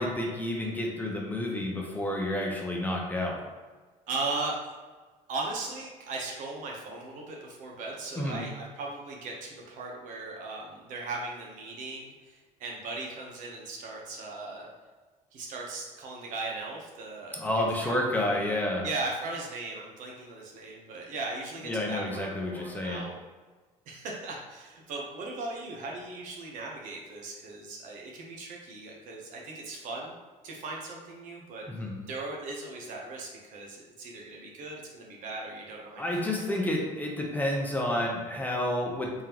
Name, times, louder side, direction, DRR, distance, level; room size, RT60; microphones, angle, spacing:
voice 1, 0.0-3.4 8.2-8.4 17.3-18.8 21.7-23.0 31.7-32.0 36.0-39.2, left 1 dB, 10° left, -1 dB, 0.7 m, -30 dB
voice 2, 4.1-4.6 5.3-14.7 15.3-18.0 18.8-23.2 23.9-30.1 30.4-31.6 32.1-36.7, right 3 dB, 70° right, -1 dB, 0.9 m, -38 dB
3.6 x 3.5 x 2.9 m, 1.3 s
cardioid pair, 125°, 14 cm